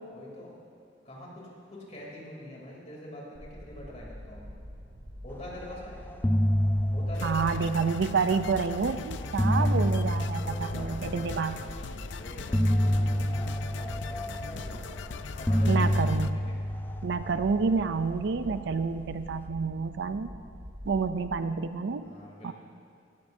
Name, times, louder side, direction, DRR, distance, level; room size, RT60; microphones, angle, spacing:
voice 1, 0.1-0.6 1.0-4.5 5.2-6.0 6.9-7.7 9.4-9.7 10.4-11.7 12.2-14.8 15.4-16.6 22.0-22.5, left 1 dB, 35° left, -3 dB, 3.1 m, -44 dB
sound 1, 3.3-21.3, equal, 85° right, 2.4 m, -45 dB
sound 2, 5.6-5.8 6.1-8.4 9.1-11.5 12.5-15.0 15.5-18.0, equal, 10° left, 0.4 m, -28 dB
sound 3, 7.1-16.3, left 5 dB, 70° left, 0.5 m, -41 dB
voice 2, 7.2-11.6 15.7-16.4 17.0-20.3 20.9-22.1 22.4-22.5, right 5 dB, 65° right, 11 dB, 0.5 m, -29 dB
17.5 x 14.0 x 2.7 m, 2.4 s
head